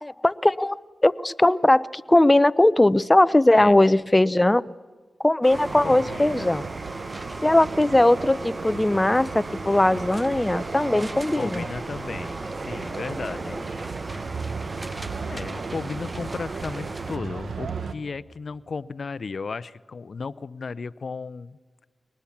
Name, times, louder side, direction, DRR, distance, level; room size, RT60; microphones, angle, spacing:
voice 1, 0.0-4.6 5.2-6.6 7.4-11.6, left 1 dB, 20° left, 18 dB, 0.6 m, -19 dB
sound 1, 5.4-17.2, right 2 dB, 25° right, 0.5 m, -37 dB
sound 2, 5.5-17.9, right 5 dB, 75° right, 1.2 m, -35 dB
voice 2, 5.8-6.5 7.3-7.5 10.9-13.6 15.3-21.6, left 4 dB, 65° left, 19 dB, 0.6 m, -35 dB
22.5 x 19.0 x 7.2 m, 1.4 s
cardioid pair, 50°, 0 cm